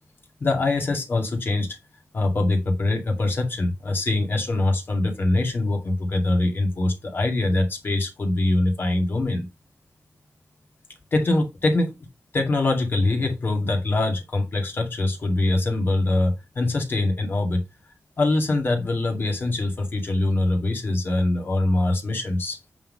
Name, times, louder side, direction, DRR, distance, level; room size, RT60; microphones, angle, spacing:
voice 1, 0.4-1.7 2.1-9.5 11.1-11.9 12.3-17.6 18.2-22.6, left 2 dB, 45° left, 2.2 m, -23 dB
8.6 x 3.9 x 5.3 m
wide cardioid pair, 160°, 5 cm